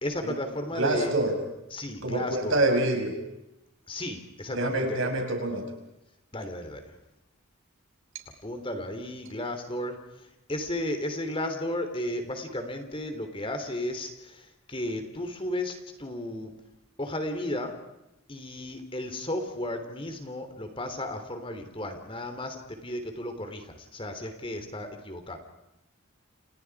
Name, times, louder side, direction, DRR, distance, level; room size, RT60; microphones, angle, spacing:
voice 1, 0.0-1.1 1.7-2.6 3.9-5.1 6.3-6.9 8.4-16.6 17.0-17.7 18.3-25.4, left 1 dB, 25° left, 7 dB, 3.3 m, -34 dB
voice 2, 0.8-1.4 2.0-3.2 4.5-5.7, right 2 dB, 65° right, 4 dB, 5.9 m, -26 dB
30.0 x 29.0 x 4.9 m, 0.90 s
head